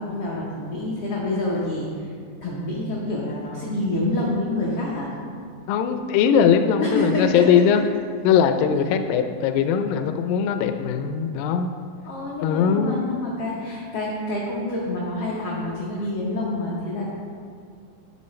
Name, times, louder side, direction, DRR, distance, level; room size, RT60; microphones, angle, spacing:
voice 1, 0.0-2.1 2.4-5.1 6.8-7.5 12.0-17.1, left 2 dB, 75° left, -5 dB, 1.3 m, -27 dB
voice 2, 5.7-7.8 8.2-11.7 12.4-13.0, left 7 dB, 90° left, 7 dB, 2.3 m, -20 dB
10.5 x 6.6 x 3.2 m, 2.2 s
omnidirectional pair, 4.0 m